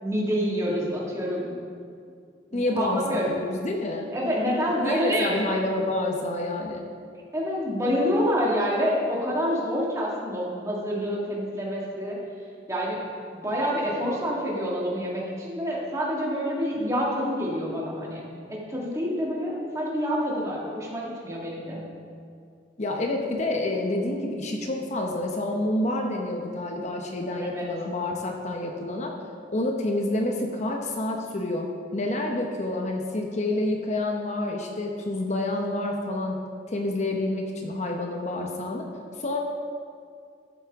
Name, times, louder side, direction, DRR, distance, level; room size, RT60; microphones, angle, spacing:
voice 1, 0.0-1.5 2.5-3.3 4.1-5.3 7.3-12.2 12.7-13.0 13.3-18.2 18.5-21.8 27.4-27.7, equal, 15° right, -4 dB, 1.9 m, -27 dB
voice 2, 2.5-4.1 4.8-6.8 22.8-29.1 29.5-36.4 36.7-38.9 39.2-39.4, left 2 dB, 40° left, 1 dB, 0.8 m, -28 dB
13.0 x 7.2 x 3.6 m, 2.3 s
head